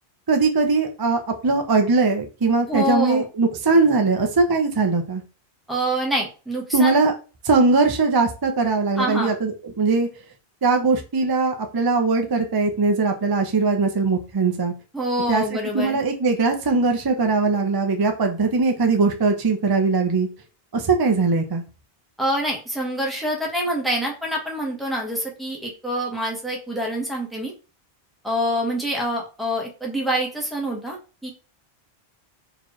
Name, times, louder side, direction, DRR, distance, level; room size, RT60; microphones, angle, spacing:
voice 1, 0.3-5.2 6.7-7.1 7.4-10.1 10.6-14.7 15.3-20.3 20.7-21.6, right 3 dB, 30° right, 4 dB, 0.5 m, -20 dB
voice 2, 2.7-3.2 5.7-7.0 9.0-9.3 14.9-16.0 22.2-27.5 28.2-31.3, equal, ahead, -2 dB, 1.1 m, -26 dB
4.3 x 3.0 x 3.0 m, 0.33 s
omnidirectional pair, 1.0 m